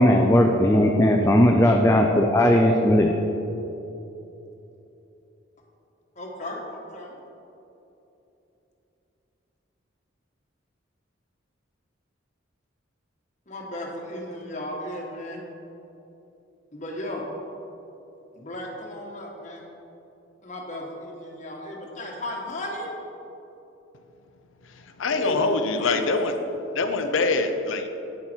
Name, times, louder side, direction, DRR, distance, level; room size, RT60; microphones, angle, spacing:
voice 1, 0.0-3.1, left 1 dB, 15° left, 1 dB, 0.4 m, -18 dB
voice 2, 6.2-7.1 13.5-15.4 16.7-17.2 18.3-19.6 20.4-23.0 25.1-26.0, left 1 dB, 40° left, -1 dB, 1.4 m, -35 dB
voice 3, 24.6-26.3 26.7-27.9, left 3 dB, 75° left, 7 dB, 0.6 m, -24 dB
9.3 x 7.2 x 4.5 m, 3.0 s
head